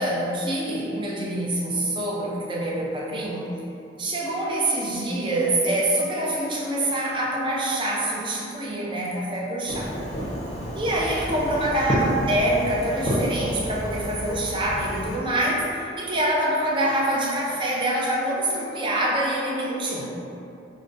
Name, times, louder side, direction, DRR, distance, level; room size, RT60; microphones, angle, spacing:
voice 1, 0.0-3.5 4.0-9.9 10.7-20.2, right 1 dB, 25° right, -4 dB, 0.5 m, -25 dB
Fireworks, 9.7-15.2, equal, 35° left, 0.6 m, -29 dB
5.0 x 2.1 x 2.5 m, 2.6 s
head